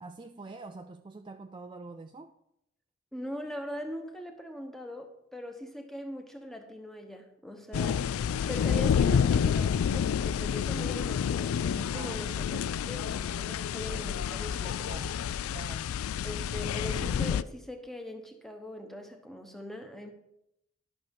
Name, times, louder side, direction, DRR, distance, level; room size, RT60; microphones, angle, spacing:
voice 1, 0.0-2.3 11.8-12.3 14.8-15.1 15.5-15.9, right 3 dB, 25° right, 0.3 m, -45 dB
voice 2, 3.1-15.0 16.2-20.1, equal, ahead, 0.9 m, -41 dB
sound 1, 7.7-17.4, left 7 dB, 90° left, 0.3 m, -29 dB
11.5 x 6.4 x 5.2 m
head